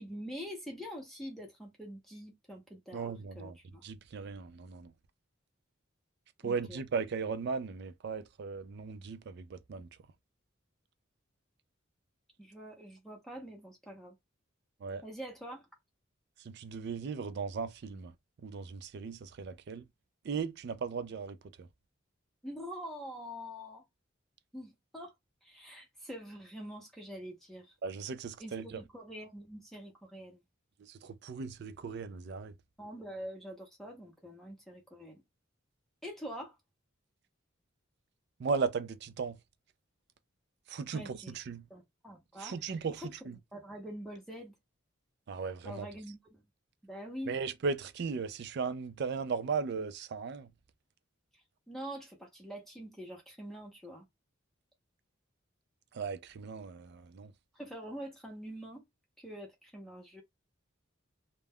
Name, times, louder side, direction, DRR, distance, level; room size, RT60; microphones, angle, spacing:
voice 1, 0.0-3.8 6.4-6.8 12.4-14.1 15.0-15.7 22.4-23.8 24.5-25.1 25.4-27.7 28.4-30.4 32.8-35.2 36.0-36.6 40.9-41.4 41.7-43.1 43.5-44.5 45.6-46.4 46.8-47.3 51.3-54.1 57.5-58.8 59.2-60.2, equal, ahead, 0.7 m, -45 dB
voice 2, 2.9-3.5 3.8-4.9 6.4-9.9 14.8-15.0 16.4-18.1 18.4-19.8 20.2-21.7 27.8-28.8 30.9-32.5 38.4-39.4 40.7-41.6 42.4-43.4 45.3-45.9 47.3-50.5 55.9-57.3, right 5 dB, 55° right, 0.4 m, -37 dB
2.2 x 2.2 x 3.4 m
head